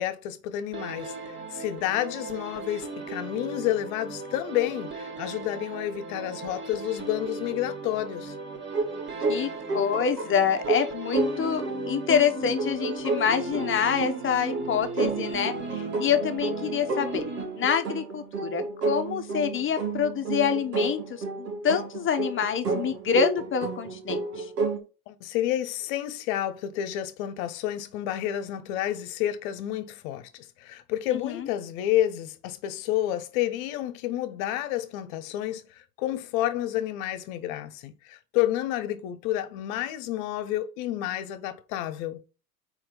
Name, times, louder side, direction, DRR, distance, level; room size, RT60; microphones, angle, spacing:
voice 1, 0.0-8.3 25.1-42.2, left 12 dB, 55° left, 1.1 m, -30 dB
sound 1, 0.7-17.9, right 3 dB, 20° right, 1.6 m, -38 dB
sound 2, 8.7-24.8, right 3 dB, 80° right, 1.9 m, -31 dB
voice 2, 9.3-17.2 17.5-24.5 31.1-31.5, left 7 dB, 25° left, 1.1 m, -27 dB
4.4 x 4.4 x 5.0 m
hypercardioid pair, 90°, 48 cm